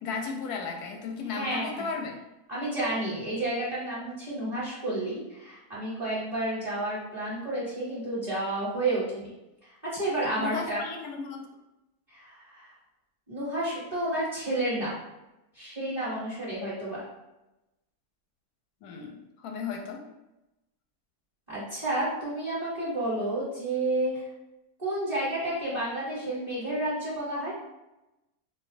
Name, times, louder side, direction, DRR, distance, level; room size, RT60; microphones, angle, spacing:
voice 1, 0.0-2.1 10.4-11.4 18.8-20.0, left 5 dB, 85° left, 2 dB, 1.1 m, -35 dB
voice 2, 1.3-1.8 2.5-9.3 9.6-10.8 12.1-12.7 13.3-15.0 15.5-17.0 21.5-24.2 24.8-27.5, right 1 dB, 30° right, -10 dB, 0.9 m, -31 dB
4.2 x 2.2 x 2.5 m, 0.96 s
omnidirectional pair, 1.6 m